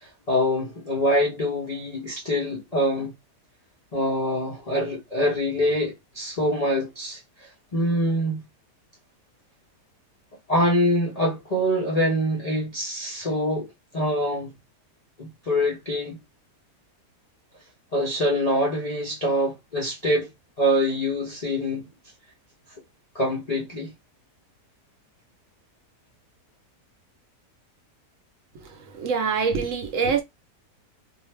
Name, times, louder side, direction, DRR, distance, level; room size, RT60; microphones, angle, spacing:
voice 1, 0.0-3.1 3.9-8.5 10.5-14.5 15.2-16.2 17.9-20.3 20.6-21.9 23.1-23.9, equal, 90° left, 0.3 m, -25 dB
voice 2, 29.0-30.2, right 5 dB, 65° right, 0.9 m, -24 dB
2.7 x 2.0 x 3.2 m
omnidirectional pair, 1.7 m